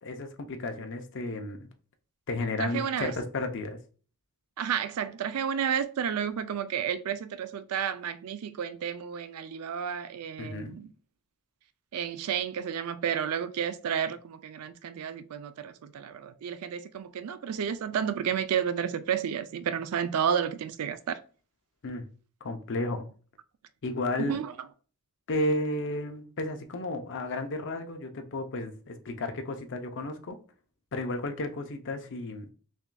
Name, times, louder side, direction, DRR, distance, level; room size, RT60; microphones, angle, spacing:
voice 1, 0.0-1.7 2.3-3.8 10.4-10.8 21.8-22.1 22.4-23.1 23.8-24.3 25.3-30.4 30.9-32.5, left 2 dB, 55° left, 0.6 m, -33 dB
voice 2, 2.6-3.1 4.6-10.9 11.9-21.2 24.2-24.5, right 8 dB, 75° right, 0.4 m, -31 dB
5.9 x 2.5 x 2.2 m
head